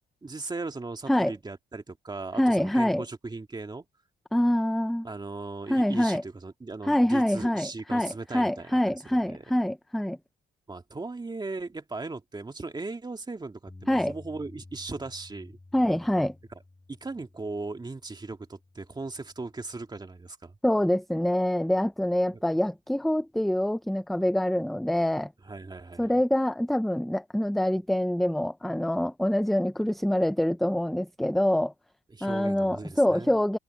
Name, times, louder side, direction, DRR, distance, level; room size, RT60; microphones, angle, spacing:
voice 1, 0.2-3.9 5.0-9.4 10.7-15.6 16.5-16.6 16.9-20.6 22.3-22.4 25.4-26.1 32.1-33.4, right 3 dB, 20° right, 2.1 m, -38 dB
voice 2, 2.4-3.0 4.3-5.1 5.7-6.2 6.9-10.2 13.9-14.1 15.7-16.3 20.6-25.3 26.0-31.7 32.2-33.6, left 1 dB, ahead, 0.5 m, -25 dB
Bass guitar, 13.7-19.9, left 2 dB, 15° left, 7.3 m, -52 dB
cardioid pair, 90°, 20 cm